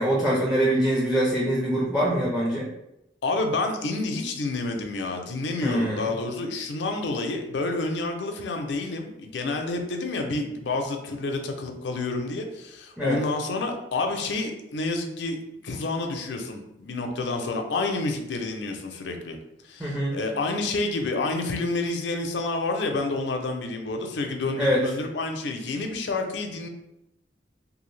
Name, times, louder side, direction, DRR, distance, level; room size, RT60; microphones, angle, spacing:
voice 1, 0.0-2.7 5.6-6.1 13.0-13.2 19.8-20.2 24.6-24.8, right 1 dB, 5° right, -4 dB, 0.4 m, -24 dB
voice 2, 3.2-15.4 15.6-19.4 19.6-26.7, left 3 dB, 75° left, 4 dB, 0.5 m, -29 dB
2.7 x 2.4 x 3.1 m, 0.88 s
head